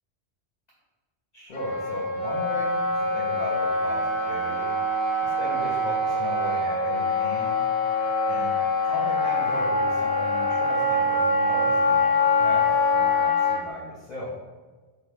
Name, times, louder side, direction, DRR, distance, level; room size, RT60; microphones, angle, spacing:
voice 1, 1.3-4.7 5.2-7.6 8.3-8.5 8.9-14.3, left 1 dB, 50° left, -6 dB, 0.6 m, -37 dB
Wind instrument woodwind instrument, 1.5-13.6, left 2 dB, 80° left, 0.9 m, -24 dB
2.7 x 2.3 x 3.3 m, 1.3 s
omnidirectional pair, 1.1 m